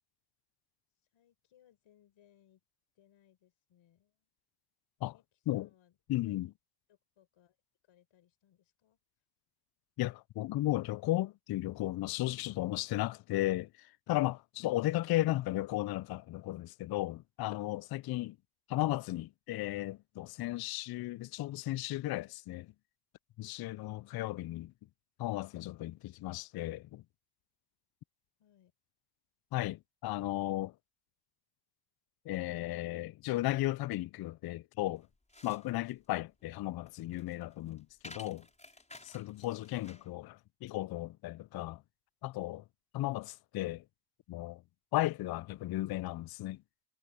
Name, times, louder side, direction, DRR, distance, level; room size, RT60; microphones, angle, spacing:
voice 1, 1.1-2.6 2.9-4.3 5.1-6.0 6.2-6.4 6.9-7.6 7.8-9.0 28.4-28.7 39.8-40.1, left 10 dB, 70° left, 4.8 m, -67 dB
voice 2, 6.1-6.5 10.0-18.4 18.7-22.7 23.4-24.7 25.2-27.0 29.5-30.7 32.3-35.1 35.4-38.5 39.0-40.3 40.6-41.8 42.2-42.6 42.9-43.8 44.3-44.6 44.9-46.6, left 16 dB, 50° left, 0.5 m, -35 dB
sound 1, 35.0-40.1, left 2 dB, 15° left, 5.4 m, -54 dB
supercardioid pair, 65°, 49 cm